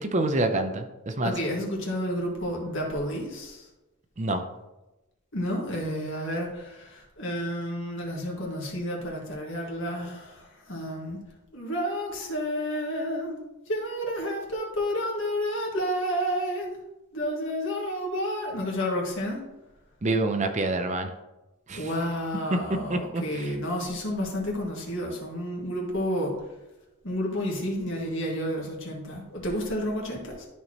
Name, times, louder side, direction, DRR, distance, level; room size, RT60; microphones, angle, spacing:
voice 1, 0.0-1.3 4.2-4.4 20.0-21.1 21.7-21.9 22.9-23.4, right 2 dB, 30° right, 6 dB, 0.6 m, -27 dB
voice 2, 1.2-3.7 5.3-11.2 11.5-13.4 13.7-16.7 17.1-19.4 21.7-26.3 27.0-30.5, equal, 60° left, -1 dB, 2.0 m, -30 dB
12.5 x 4.4 x 3.0 m, 1.0 s
head